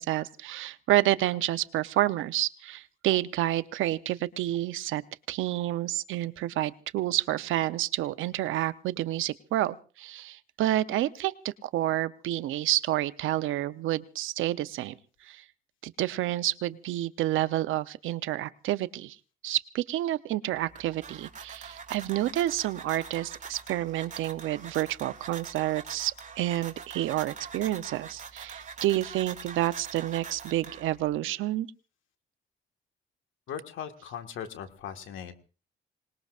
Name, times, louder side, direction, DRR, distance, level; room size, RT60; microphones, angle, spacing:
voice 1, 0.0-5.0 5.3-15.0 15.2-15.4 15.8-19.2 19.4-31.7, right 14 dB, 85° right, 14 dB, 0.7 m, -29 dB
sound 1, 20.5-31.2, right 6 dB, 40° right, 2.2 m, -44 dB
voice 2, 33.5-35.3, left 8 dB, 80° left, 7 dB, 1.7 m, -39 dB
26.0 x 19.5 x 2.5 m, 0.36 s
cardioid pair, 90°, 20 cm